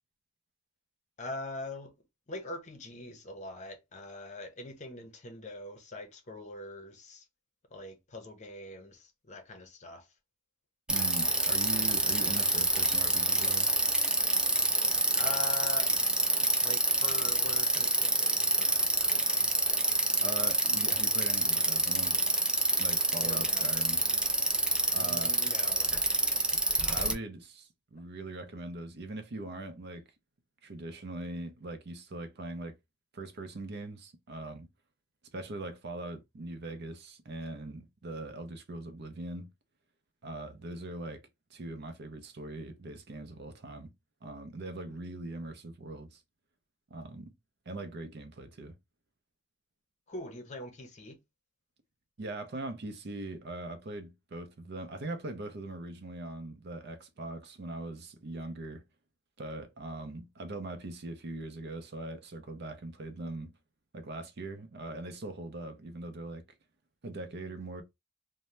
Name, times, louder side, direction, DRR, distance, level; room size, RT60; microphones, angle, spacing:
voice 1, 1.2-1.9 2.3-7.3 7.7-10.1 15.1-16.0 16.6-19.5 23.2-23.7 25.0-26.2 50.1-51.2, left 2 dB, 35° left, 0.6 m, -43 dB
Bicycle, 10.9-27.1, right 2 dB, 5° right, 0.3 m, -27 dB
voice 2, 10.9-13.7 20.2-22.3 22.8-24.0 24.9-25.3 26.9-30.0 30.6-32.7 33.1-34.7 35.3-39.5 40.2-41.2 41.5-43.9 44.2-46.2 46.9-47.3 47.7-48.7 52.2-58.8 59.4-63.5 63.9-66.4 67.0-67.8, right 2 dB, 55° right, 0.6 m, -41 dB
2.7 x 2.1 x 3.1 m
head